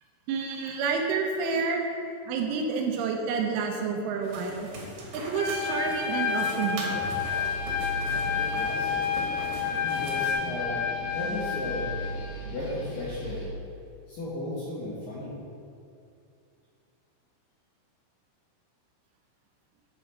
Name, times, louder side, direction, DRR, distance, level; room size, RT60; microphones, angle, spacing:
voice 1, 0.3-1.9 2.3-4.7 5.1-7.0, right 5 dB, 80° right, 2 dB, 3.2 m, -29 dB
sound 1, 4.2-10.3, right 2 dB, 65° right, 2.5 m, -40 dB
Trumpet, 5.4-12.1, left 6 dB, 85° left, 3.4 m, -30 dB
sound 2, 7.0-13.5, equal, 50° left, 2.5 m, -39 dB
voice 2, 7.9-9.0 9.7-10.8 11.1-12.1 12.3-13.5 14.1-15.3, left 1 dB, 70° left, -8 dB, 2.1 m, -35 dB
10.5 x 4.1 x 5.3 m, 2.5 s
omnidirectional pair, 5.7 m